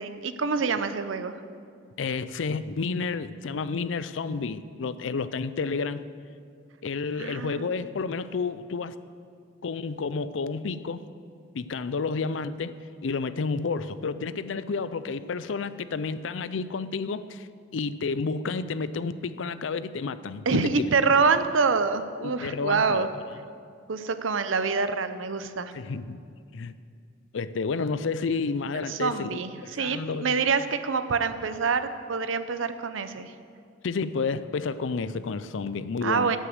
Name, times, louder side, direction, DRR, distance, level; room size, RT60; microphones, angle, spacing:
voice 1, 0.0-1.4 7.2-7.7 20.5-23.1 23.9-25.7 28.9-33.3 36.0-36.4, right 5 dB, 90° right, 0.6 m, -26 dB
voice 2, 2.0-6.0 6.8-9.0 9.6-11.1 11.5-12.8 13.0-17.5 17.7-20.9 22.2-23.1 25.7-26.2 26.5-26.7 27.3-30.4 33.8-36.4, left 4 dB, 75° left, 0.5 m, -30 dB
13.0 x 6.4 x 7.9 m
head